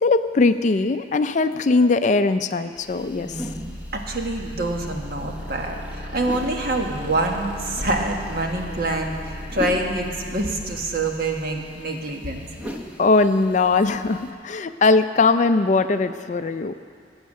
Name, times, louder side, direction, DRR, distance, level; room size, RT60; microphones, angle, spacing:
voice 1, 0.0-3.5 13.0-16.7, left 3 dB, 40° left, 10 dB, 0.4 m, -20 dB
sound 1, 2.8-14.3, left 1 dB, 10° right, 0.9 m, -40 dB
sound 2, 3.0-11.8, equal, 35° right, 2.1 m, -37 dB
voice 2, 3.2-12.5, right 2 dB, 50° right, 2 dB, 1.4 m, -26 dB
19.5 x 8.0 x 6.6 m, 2.2 s
head